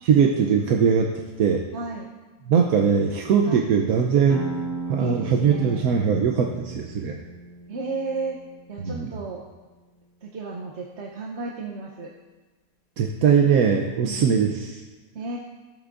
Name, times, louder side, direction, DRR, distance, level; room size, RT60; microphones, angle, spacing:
voice 1, 0.0-1.1 1.4-1.6 2.5-4.4 4.9-7.2 8.8-9.1 13.0-14.8, right 6 dB, 80° right, 2 dB, 1.2 m, -21 dB
voice 2, 1.7-2.1 3.4-3.6 5.0-5.8 7.7-8.4 8.7-9.4 10.2-12.1 14.0-14.3 15.1-15.4, right 3 dB, 55° right, -1 dB, 1.0 m, -33 dB
sound 1, 4.3-9.7, right 2 dB, 45° left, 2.1 m, -36 dB
15.0 x 8.1 x 2.5 m, 1.2 s
omnidirectional pair, 1.5 m